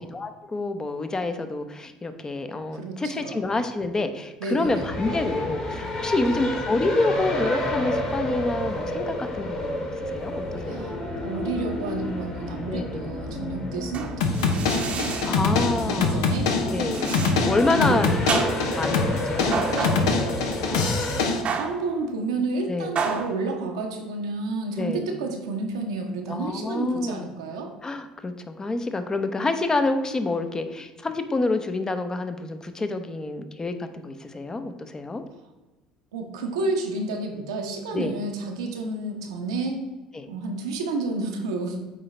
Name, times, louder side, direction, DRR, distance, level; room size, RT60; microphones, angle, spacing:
voice 1, 0.0-10.9 12.7-13.1 15.3-16.4 16.7-18.5 18.8-20.2 20.6-21.0 22.6-22.9 24.8-25.1 26.3-27.3 27.8-35.2 37.9-38.1 40.1-40.3, left 2 dB, 25° left, 9 dB, 0.7 m, -28 dB
voice 2, 2.7-3.5 4.4-4.8 6.2-6.4 10.6-10.9 11.2-15.1 15.9-16.5 17.7-18.3 21.6-27.7 36.1-39.8 40.3-41.8, right 3 dB, 85° right, 2 dB, 1.0 m, -30 dB
sound 1, 4.6-21.2, left 1 dB, 45° left, 2.1 m, -30 dB
sound 2, 13.9-15.4 16.9-17.4 18.3-18.8 19.5-20.2 21.4-21.9 23.0-23.3, right 5 dB, 45° right, 0.8 m, -29 dB
sound 3, 14.2-21.4, left 4 dB, 80° left, 0.7 m, -24 dB
8.7 x 3.9 x 3.2 m, 1.2 s
hypercardioid pair, 65°, 3 cm